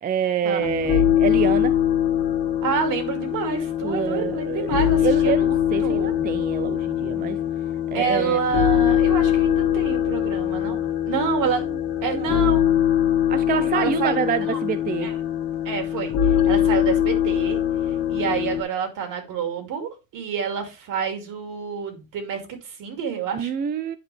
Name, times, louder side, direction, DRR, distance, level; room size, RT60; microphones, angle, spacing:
voice 1, 0.0-1.7 3.8-7.4 7.9-8.4 12.1-12.6 13.3-15.1 23.3-24.0, right 8 dB, 25° right, 0.4 m, -27 dB
sound 1, 0.6-18.6, left 10 dB, 55° left, 1.7 m, -22 dB
voice 2, 2.6-6.2 7.9-10.8 11.1-11.6 12.0-12.6 13.6-14.2 14.5-14.6 15.0-15.1 15.6-17.6 18.1-23.5, right 6 dB, 55° right, 2.4 m, -28 dB
9.9 x 4.7 x 3.3 m
supercardioid pair, 115°, 39 cm